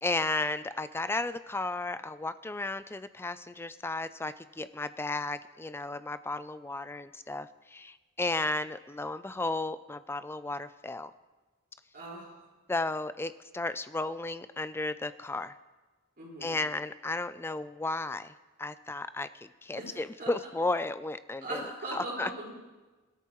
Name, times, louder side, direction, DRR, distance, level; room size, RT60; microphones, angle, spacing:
voice 1, 0.0-11.1 12.7-15.5 16.4-18.3 18.6-22.3, left 2 dB, 10° left, 13 dB, 0.4 m, -34 dB
voice 2, 11.9-12.3 16.2-16.6 19.8-20.3 21.4-22.5, right 1 dB, 45° right, -4 dB, 4.8 m, -40 dB
17.5 x 13.0 x 3.1 m, 1.2 s
head